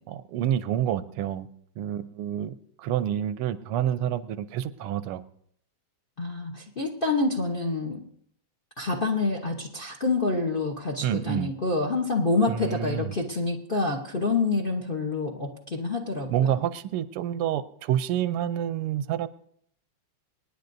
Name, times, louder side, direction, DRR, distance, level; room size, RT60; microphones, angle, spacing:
voice 1, 0.1-1.5 1.8-5.2 11.0-11.5 12.5-13.1 16.3-19.3, right 10 dB, 85° right, 13 dB, 1.6 m, -28 dB
voice 2, 6.2-8.0 8.8-16.3, left 3 dB, 40° left, 2 dB, 0.8 m, -27 dB
25.5 x 10.0 x 2.7 m, 0.66 s
omnidirectional pair, 2.4 m